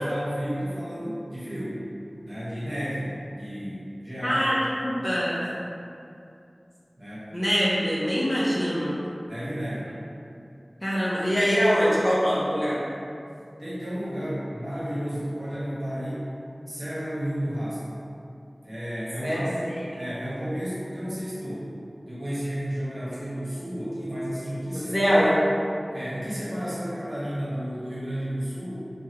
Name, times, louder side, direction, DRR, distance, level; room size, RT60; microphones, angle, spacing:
voice 1, 0.0-1.8 2.2-4.4 7.0-7.3 9.3-9.9 13.6-16.3 16.7-17.8 18.6-19.5 20.0-21.7 22.1-25.2 25.9-28.8, equal, 55° right, -10 dB, 1.1 m, -32 dB
voice 2, 4.2-5.4 7.3-9.0 10.8-12.8 19.2-19.8 24.7-25.4, equal, 30° left, -8 dB, 0.7 m, -24 dB
3.0 x 2.4 x 2.9 m, 2.5 s
wide cardioid pair, 50°, 0 cm